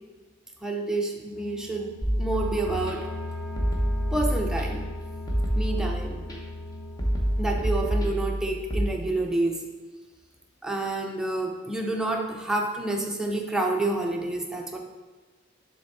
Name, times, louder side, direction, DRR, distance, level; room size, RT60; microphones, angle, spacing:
voice 1, 0.6-1.9 2.2-3.1 4.1-4.9 5.6-6.2 7.4-9.6 10.6-14.8, right 2 dB, 5° right, 0 dB, 0.6 m, -28 dB
sound 1, 1.3-7.7, left 1 dB, 80° left, 0.8 m, -38 dB
sound 2, 2.0-2.9 3.6-4.9 5.3-6.4 7.0-8.9, equal, 20° left, 0.9 m, -27 dB
6.8 x 3.5 x 4.1 m, 1.3 s
head